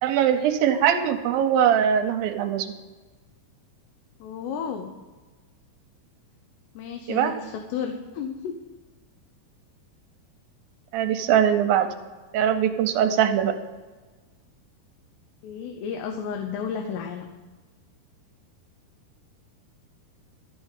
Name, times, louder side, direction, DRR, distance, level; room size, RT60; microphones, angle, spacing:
voice 1, 0.0-2.7 7.1-7.3 10.9-11.9 12.3-13.5, right 9 dB, 75° right, 7 dB, 2.2 m, -21 dB
voice 2, 4.2-4.9 6.7-8.6 15.4-17.3, left 7 dB, 85° left, 4 dB, 3.0 m, -32 dB
13.0 x 6.2 x 8.9 m, 1.3 s
omnidirectional pair, 4.7 m